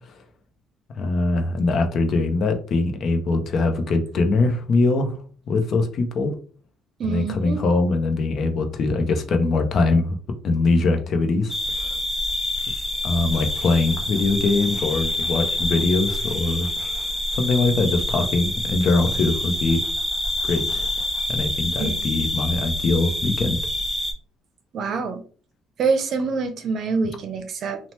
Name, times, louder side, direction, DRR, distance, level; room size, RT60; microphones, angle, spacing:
voice 1, 1.0-5.2 5.5-6.3 7.0-10.2 10.4-12.0 13.0-19.8 20.4-20.9 21.3-23.6, left 3 dB, 55° left, 6 dB, 0.6 m, -22 dB
voice 2, 7.0-7.6 21.8-22.0 24.7-25.2 25.8-27.8, right 4 dB, 55° right, 7 dB, 0.6 m, -25 dB
sound 1, 11.5-24.1, left 1 dB, 15° left, 0.6 m, -27 dB
2.9 x 2.1 x 3.0 m, 0.40 s
cardioid pair, 105°, 0 cm